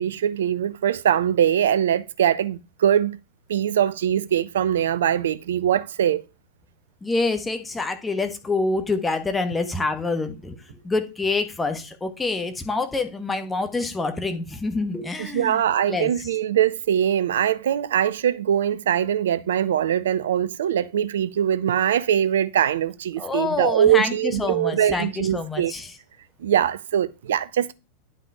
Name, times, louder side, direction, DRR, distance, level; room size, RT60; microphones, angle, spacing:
voice 1, 0.0-3.2 3.5-6.3 15.2-25.7 26.4-27.7, right 10 dB, 60° right, 0.5 m, -22 dB
voice 2, 7.0-10.6 10.8-15.6 15.9-16.3 23.2-25.9, left 3 dB, 10° left, 1.5 m, -26 dB
9.8 x 5.8 x 4.9 m
figure-of-eight pair, 90°, 0 cm